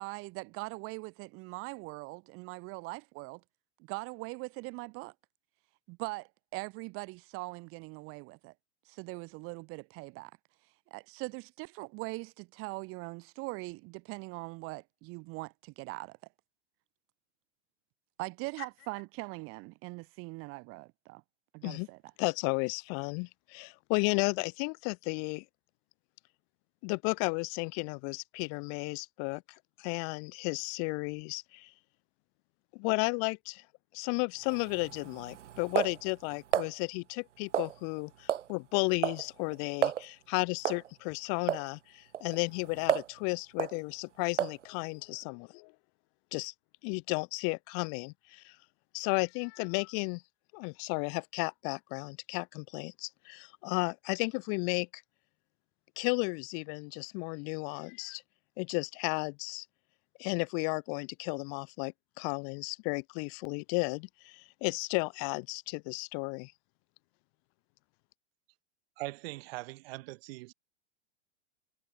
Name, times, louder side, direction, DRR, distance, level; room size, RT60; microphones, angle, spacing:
voice 1, 0.0-3.4 3.8-5.1 5.9-8.5 8.8-10.3 10.9-16.2 18.2-21.2 21.5-22.0, right 26 dB, 40° right, 0.8 m, -41 dB
voice 2, 22.2-25.4 26.8-31.7 32.7-33.6 33.9-45.7 46.3-46.5 46.8-48.6 48.9-50.2 50.5-55.0 56.0-58.2 58.6-59.6 60.2-66.5, left 40 dB or more, 45° left, 1.1 m, -33 dB
sound 1, 34.4-36.7 37.5-38.0 38.3-38.5 38.8-39.2 39.5-39.6 39.8-40.0 40.6-40.9 41.5-41.7 42.1-43.2 43.6-43.8 44.4-44.6, right 10 dB, 80° right, 1.1 m, -32 dB
voice 3, 69.0-70.5, right 21 dB, 55° right, 1.6 m, -41 dB
hypercardioid pair, 105°, 35 cm